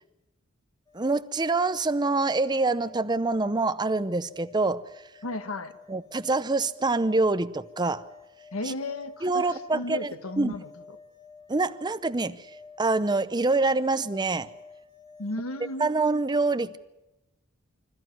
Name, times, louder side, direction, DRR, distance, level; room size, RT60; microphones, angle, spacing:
sound 1, 0.9-16.2, left 5 dB, 15° left, 2.2 m, -52 dB
voice 1, 0.9-4.8 5.9-8.0 8.7-8.8 9.2-10.6 11.5-12.5 12.8-14.5 15.8-16.8, right 3 dB, 20° right, 0.7 m, -25 dB
voice 2, 5.2-5.8 8.5-11.0 15.2-15.9, left 2 dB, 85° left, 1.4 m, -34 dB
26.0 x 14.0 x 9.4 m
head